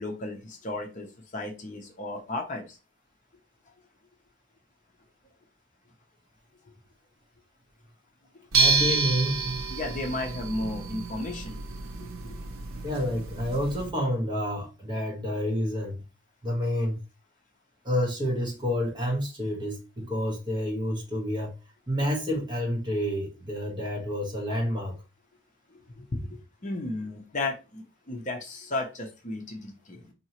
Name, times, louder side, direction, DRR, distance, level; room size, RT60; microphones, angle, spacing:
voice 1, 0.0-2.8 8.9-9.0 9.7-11.6 12.0-12.4 26.0-26.2 26.6-30.1, left 2 dB, 35° left, 0.7 m, -34 dB
voice 2, 8.5-9.6 12.8-16.0 16.4-17.0 17.8-21.5 21.9-25.0, equal, 20° right, 1.1 m, -29 dB
sound 1, 8.5-13.9, right 4 dB, 80° right, 0.7 m, -29 dB
4.4 x 2.8 x 2.9 m
head